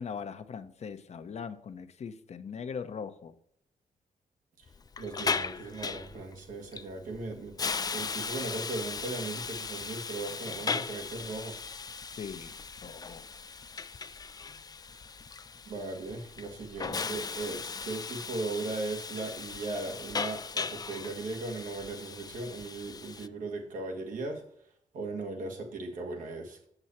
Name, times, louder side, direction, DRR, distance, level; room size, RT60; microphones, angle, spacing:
voice 1, 0.0-3.3 12.2-12.5 12.8-13.2, left 6 dB, 55° left, 10 dB, 0.8 m, -40 dB
Hiss, 4.7-23.3, left 5 dB, 30° left, 0.4 m, -37 dB
voice 2, 5.0-7.6 7.9-11.6 15.7-24.4 24.9-26.6, right 3 dB, 80° right, 3 dB, 1.8 m, -38 dB
7.9 x 7.1 x 4.3 m, 0.69 s
cardioid pair, 75°, 13 cm